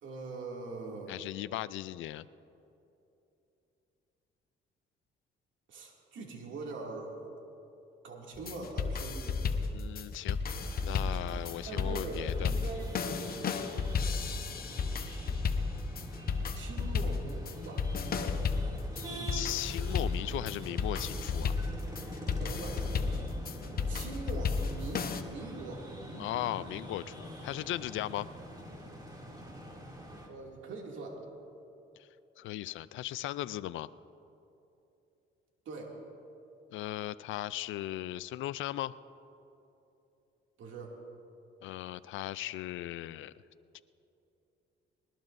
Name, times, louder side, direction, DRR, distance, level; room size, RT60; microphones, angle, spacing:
voice 1, 0.0-1.2 5.7-7.3 8.0-9.4 10.8-11.1 11.6-13.5 16.5-18.8 19.1-19.4 22.4-22.9 23.9-26.5 28.3-28.4 30.3-31.2 35.7-35.9 40.6-41.0, right 3 dB, 75° right, -1 dB, 2.5 m, -43 dB
voice 2, 1.1-2.3 9.7-12.5 19.3-21.5 26.2-28.3 32.0-32.1 32.4-33.9 36.7-39.0 41.6-43.3 43.7-43.8, left 14 dB, 80° left, 17 dB, 0.4 m, -37 dB
sound 1, 8.4-25.2, left 5 dB, 50° left, 0.9 m, -33 dB
sound 2, 10.4-30.3, equal, 20° right, 2.6 m, -45 dB
21.0 x 19.5 x 2.6 m, 2.9 s
cardioid pair, 90°, 20 cm